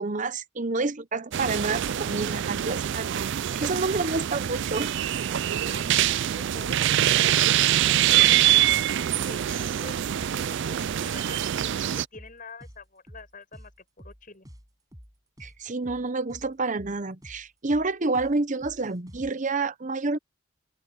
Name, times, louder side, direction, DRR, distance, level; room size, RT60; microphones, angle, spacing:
voice 1, 0.0-3.3 3.5-4.9 15.4-20.2, right 3 dB, 35° right, 0.8 m, -28 dB
sound 1, 1.3-12.1, right 11 dB, 55° right, 0.3 m, -24 dB
voice 2, 3.9-4.3 5.6-8.9 9.3-13.7 14.0-14.5, left 3 dB, 40° left, 6.0 m, -46 dB
sound 2, 12.1-19.3, equal, 15° right, 7.9 m, -48 dB
open air
head